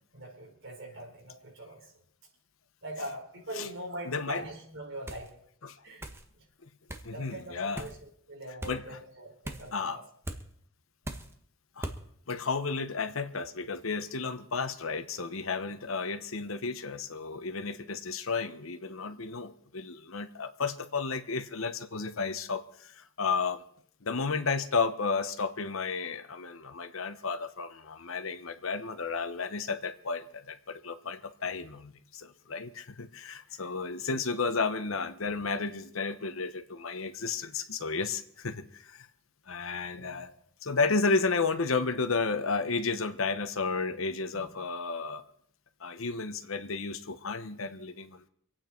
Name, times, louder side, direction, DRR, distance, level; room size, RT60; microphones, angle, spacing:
voice 1, 0.1-1.9 2.8-5.3 5.8-6.0 6.4-6.5 7.1-10.0 34.1-34.2 39.9-40.3 44.3-44.4, right 1 dB, 65° right, 0 dB, 4.8 m, -42 dB
voice 2, 4.0-4.4 5.6-5.8 7.0-7.9 8.7-9.0 9.7-10.0 11.8-11.9 12.3-23.6 24.0-39.0 39.5-40.3 40.6-45.2 45.8-48.3, left 4 dB, 70° left, 10 dB, 1.0 m, -32 dB
sound 1, 5.1-5.3 6.0-6.2 6.9-7.1 7.8-8.0 8.6-8.8 9.4-9.7 10.2-10.4 11.0-11.3 11.8-12.0, right 1 dB, 10° right, 1.3 m, -39 dB
26.0 x 9.0 x 4.5 m, 0.66 s
head